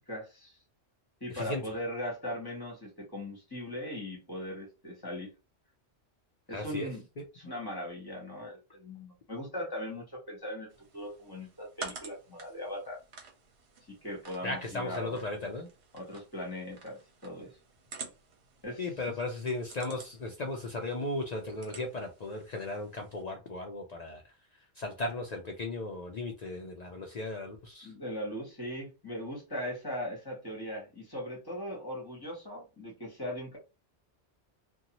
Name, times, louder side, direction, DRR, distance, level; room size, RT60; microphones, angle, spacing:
voice 1, 0.1-0.6 1.2-5.3 6.5-7.0 7.3-13.0 13.9-15.2 15.9-17.5 18.6-18.9 27.8-33.6, left 1 dB, 20° left, 1.1 m, -39 dB
voice 2, 6.5-6.9 14.4-15.7 18.8-24.3 24.8-27.9, left 2 dB, 60° left, 0.4 m, -36 dB
sound 1, 10.7-23.2, right 5 dB, 70° right, 1.0 m, -50 dB
2.6 x 2.2 x 2.9 m
omnidirectional pair, 1.2 m